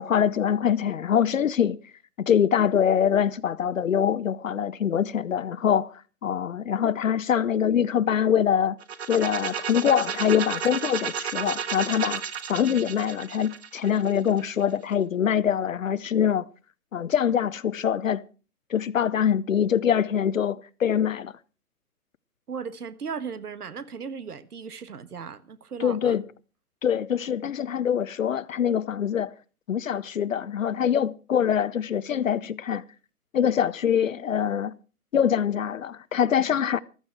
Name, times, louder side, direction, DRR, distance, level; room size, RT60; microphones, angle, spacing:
voice 1, 0.0-1.8 2.3-8.8 9.1-12.2 12.5-16.5 16.9-18.2 18.7-21.3 25.8-26.2 26.8-29.3 29.7-32.8 33.3-34.7 35.1-36.8, left 8 dB, 60° left, 0.8 m, -24 dB
sound 1, 8.8-14.6, right 7 dB, 45° right, 1.5 m, -32 dB
voice 2, 22.5-26.2, right 6 dB, 80° right, 1.5 m, -37 dB
14.5 x 13.0 x 4.6 m
hypercardioid pair, 150°, 45 cm